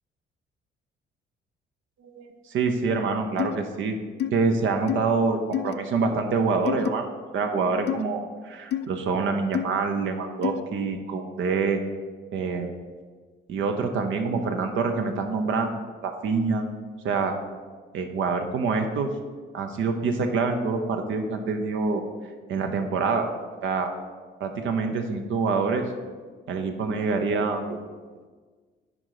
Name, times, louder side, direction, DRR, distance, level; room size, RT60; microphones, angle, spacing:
voice 1, 2.0-4.0 4.3-7.1 7.3-11.8 12.3-12.7 13.5-16.6 17.0-17.4 17.9-19.1 19.5-22.0 22.5-23.3 23.6-23.9 24.4-25.8 26.5-27.9, right 4 dB, 75° right, 5 dB, 0.9 m, -26 dB
sound 1, 3.4-3.6 4.2-4.3 4.9-5.0 5.5-5.7 6.7-6.9 7.9-8.0 8.7-8.9 9.5-9.7 10.4-10.6, left 10 dB, 60° left, 0.4 m, -27 dB
10.0 x 3.9 x 4.9 m, 1.5 s
cardioid pair, 90°, 20 cm